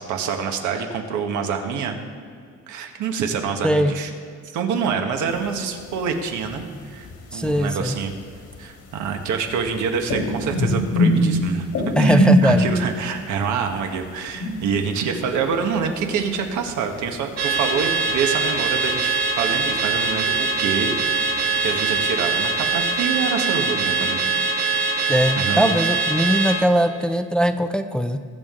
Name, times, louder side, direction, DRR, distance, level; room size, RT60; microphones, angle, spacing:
voice 1, 0.0-1.9 2.7-4.1 4.4-8.1 8.6-11.7 12.0-21.2 21.6-24.2 25.3-25.8, right 6 dB, 85° right, 4 dB, 1.4 m, -26 dB
sound 1, 5.3-6.1 6.4-17.1 17.4-18.9 19.2-23.1, equal, 55° left, 1.8 m, -24 dB
voice 2, 7.3-7.9 12.0-12.7 25.1-28.2, equal, 5° left, 7 dB, 0.5 m, -20 dB
Car / Alarm, 17.4-26.6, right 4 dB, 65° right, 2.5 m, -22 dB
20.0 x 7.4 x 3.8 m, 2.2 s
cardioid pair, 115°, 29 cm